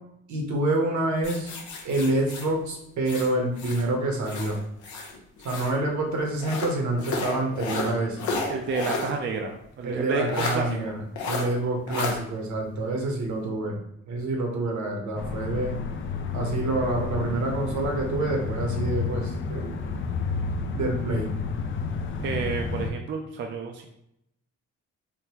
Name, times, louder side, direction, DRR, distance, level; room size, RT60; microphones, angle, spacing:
voice 1, 0.3-1.6 1.8-4.6 5.4-8.3 9.8-15.8 16.3-19.8 20.7-21.3, right 2 dB, 70° right, 1 dB, 0.9 m, -27 dB
sound 1, 1.2-3.9 4.2-5.8 6.4-9.1 9.5-9.6 10.3-10.6 11.2-11.5 11.9-12.1, left 3 dB, 75° left, 0.7 m, -32 dB
voice 2, 8.4-10.9 22.2-23.9, right 4 dB, 40° right, 2 dB, 0.4 m, -30 dB
sound 2, 15.2-22.9, left 4 dB, 40° left, 0.4 m, -31 dB
3.6 x 2.2 x 2.8 m, 0.78 s
cardioid pair, 90°, 30 cm